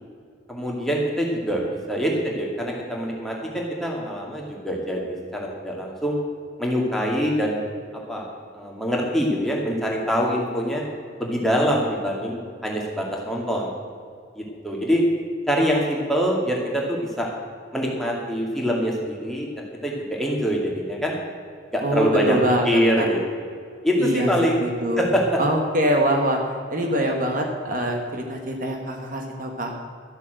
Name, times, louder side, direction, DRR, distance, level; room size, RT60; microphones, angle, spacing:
voice 1, 0.5-6.2 6.6-7.6 8.1-8.2 8.5-10.8 11.2-13.7 14.4-15.0 15.5-17.3 17.7-21.1 21.7-22.4 22.7-23.2 23.8-24.6 25.0-25.4, equal, ahead, -2 dB, 2.4 m, -24 dB
voice 2, 21.8-23.1 24.0-24.3 24.6-25.0 25.4-26.4 26.7-29.7, equal, 45° right, 2 dB, 1.5 m, -24 dB
13.5 x 8.2 x 7.9 m, 2.2 s
head